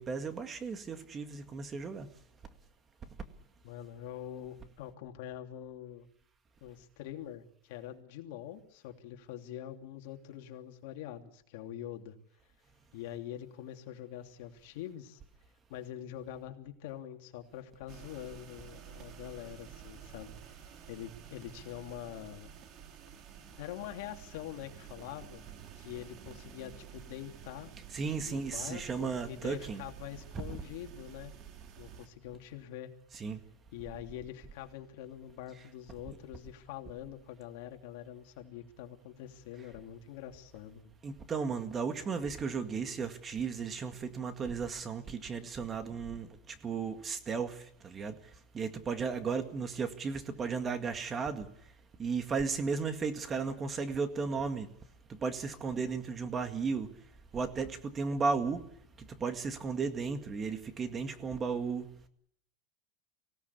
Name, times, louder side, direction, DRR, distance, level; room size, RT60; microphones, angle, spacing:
voice 1, 0.0-2.1 27.9-29.8 30.3-30.5 33.1-33.4 41.0-48.2 48.5-51.5 52.0-54.7 55.1-56.9 57.3-58.6 59.0-61.9, right 5 dB, 20° right, 8 dB, 2.0 m, -35 dB
voice 2, 3.6-6.1 6.6-12.1 12.9-15.2 15.7-20.6 20.9-22.5 23.6-25.4 25.8-27.7 28.2-31.3 31.8-32.9 33.7-40.9, left 11 dB, 65° left, 4 dB, 3.0 m, -45 dB
sound 1, 17.9-32.1, right 9 dB, 40° right, 2.9 m, -51 dB
25.0 x 17.5 x 8.5 m, 0.71 s
supercardioid pair, 140°, 0 cm